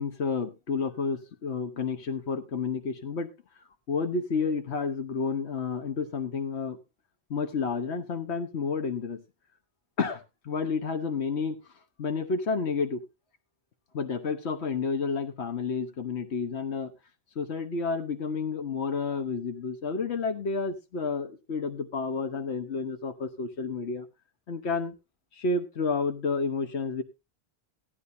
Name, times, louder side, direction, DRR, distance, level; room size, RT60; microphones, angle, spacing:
voice 1, 0.0-3.3 3.9-6.8 7.3-9.2 10.0-11.6 12.0-13.0 13.9-16.9 17.4-24.1 24.5-24.9 25.4-27.0, left 4 dB, 85° left, 8 dB, 1.4 m, -30 dB
15.5 x 11.5 x 2.7 m, 0.24 s
omnidirectional pair, 1.1 m